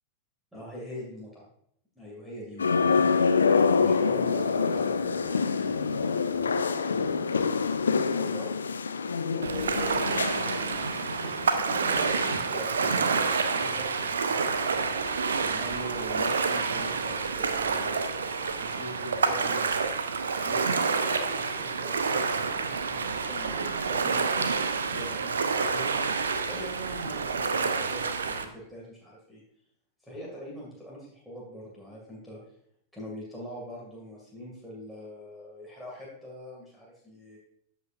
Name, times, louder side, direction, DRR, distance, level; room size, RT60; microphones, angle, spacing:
voice 1, 0.5-1.4 2.0-3.1 3.8-8.5 9.3-10.7 11.5-14.4 15.4-19.8 20.4-25.9 26.4-29.4 30.0-32.4 32.9-37.4, equal, 5° right, -4 dB, 2.3 m, -43 dB
sound 1, 2.6-12.4 12.7-12.8, left 5 dB, 70° left, 0.4 m, -26 dB
Ocean, 9.4-28.4, right 5 dB, 70° right, 0.6 m, -28 dB
13.5 x 5.2 x 2.6 m, 0.68 s
figure-of-eight pair, 90°, 0 cm